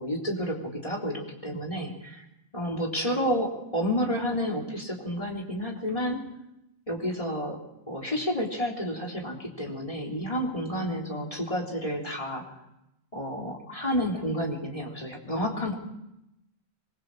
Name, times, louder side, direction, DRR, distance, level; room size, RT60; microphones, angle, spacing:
voice 1, 0.0-2.2 2.5-6.2 6.9-7.6 7.9-12.4 13.1-15.8, equal, 35° left, -1 dB, 3.9 m, -30 dB
27.0 x 22.0 x 4.9 m, 0.83 s
omnidirectional pair, 1.1 m